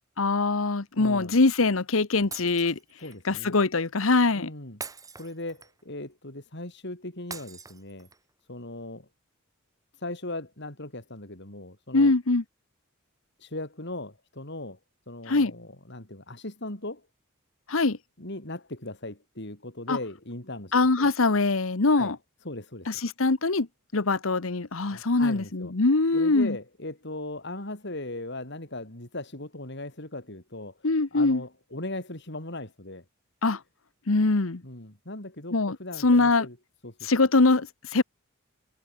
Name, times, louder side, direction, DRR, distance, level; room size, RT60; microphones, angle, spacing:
voice 1, 0.2-2.8 3.3-4.5 11.9-12.4 15.3-15.5 17.7-18.0 19.9-20.0 20.7-22.1 22.9-23.7 23.9-26.6 30.8-31.4 33.4-33.6 34.1-34.6 35.5-35.8 36.0-36.5 37.0-38.0, left 3 dB, 75° left, 1.1 m, -23 dB
voice 2, 1.0-1.4 3.0-3.6 4.4-4.8 5.2-8.1 8.5-9.1 10.0-12.1 13.4-14.8 15.1-17.1 18.2-21.1 22.0-22.1 22.4-22.9 24.9-25.7 26.1-33.0 34.6-36.6 36.8-37.0, left 2 dB, 55° left, 4.6 m, -38 dB
Shatter, 2.3-3.2 4.8-5.9 7.3-8.3, right 5 dB, 15° right, 2.2 m, -43 dB
head